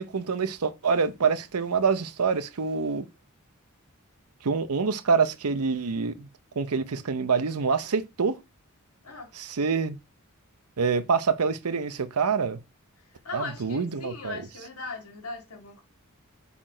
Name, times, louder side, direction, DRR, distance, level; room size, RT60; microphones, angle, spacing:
voice 1, 0.0-3.1 4.4-6.3 6.6-8.4 9.3-10.0 10.8-12.6 13.3-14.4, right 5 dB, 90° right, 0.7 m, -26 dB
voice 2, 13.2-15.8, left 3 dB, 85° left, 1.9 m, -39 dB
5.9 x 4.3 x 5.0 m
head